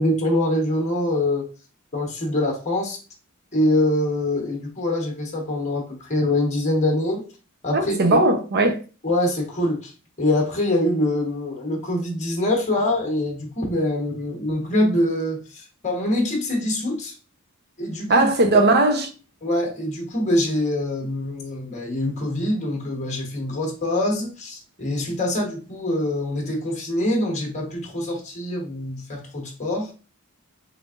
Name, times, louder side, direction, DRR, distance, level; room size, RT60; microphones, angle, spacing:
voice 1, 0.0-1.5 1.9-3.0 3.5-7.2 7.6-8.2 9.0-9.9 10.2-17.1 17.8-18.3 19.4-30.0, left 1 dB, 35° left, 1.1 m, -24 dB
voice 2, 7.7-8.8 18.1-19.1, right 2 dB, 50° right, 0.7 m, -18 dB
3.8 x 3.4 x 2.5 m
head